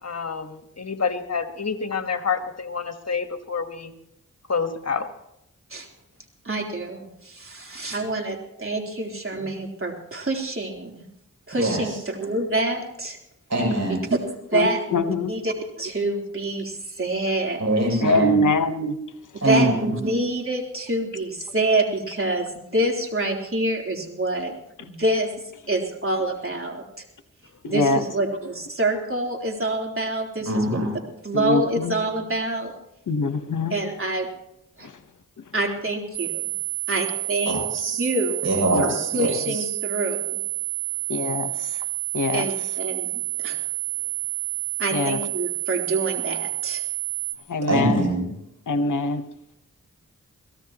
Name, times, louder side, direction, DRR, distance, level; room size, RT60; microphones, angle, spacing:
voice 1, 0.0-3.9 4.5-5.1, left 5 dB, 55° left, 7 dB, 1.5 m, -28 dB
voice 2, 6.4-11.0 11.5-13.2 13.9-18.0 19.4-24.5 24.8-25.3 25.7-26.8 27.7-30.8 31.2-32.7 33.7-34.3 34.8-34.9 35.5-36.5 36.9-37.6 38.0-38.4 38.8-40.4 42.3-43.6 44.8-46.8, right 2 dB, 40° right, 1 dB, 3.7 m, -26 dB
voice 3, 13.5-14.0 17.6-18.4 19.4-19.9 30.5-31.0 37.5-38.0 38.4-39.6 47.7-48.3, right 1 dB, 55° right, 1 dB, 7.3 m, -23 dB
voice 4, 14.5-15.3 18.0-19.0 27.6-28.0 31.3-31.9 33.1-33.7 38.7-38.9 41.1-41.5 42.1-42.5 44.9-45.2 47.5-48.1 48.7-49.2, left 2 dB, 70° left, 9 dB, 1.1 m, -23 dB
sound 1, 36.1-47.3, right 17 dB, 5° right, 1.9 m, -29 dB
23.0 x 16.5 x 3.0 m, 0.80 s
cardioid pair, 40°, 32 cm